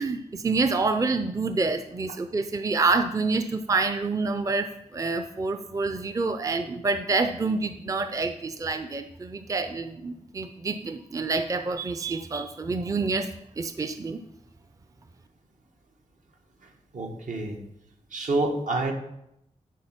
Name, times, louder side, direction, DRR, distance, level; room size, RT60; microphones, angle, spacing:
voice 1, 0.0-13.3 13.6-14.2, right 3 dB, 25° right, 8 dB, 0.4 m, -27 dB
voice 2, 16.6-17.6 18.1-18.9, right 2 dB, 75° right, 2 dB, 1.4 m, -28 dB
11.0 x 4.3 x 5.7 m, 0.80 s
wide cardioid pair, 145°, 13 cm